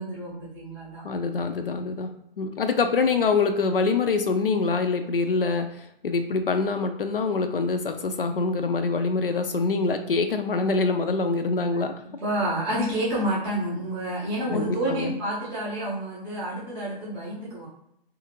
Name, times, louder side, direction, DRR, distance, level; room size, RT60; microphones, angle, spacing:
voice 1, 0.0-1.0 11.7-17.7, right 1 dB, 5° right, -9 dB, 0.5 m, -29 dB
voice 2, 1.0-2.1 2.4-12.0 14.5-15.1, left 4 dB, 70° left, 7 dB, 0.4 m, -25 dB
2.6 x 2.5 x 2.9 m, 0.76 s
figure-of-eight pair, 130°, 29 cm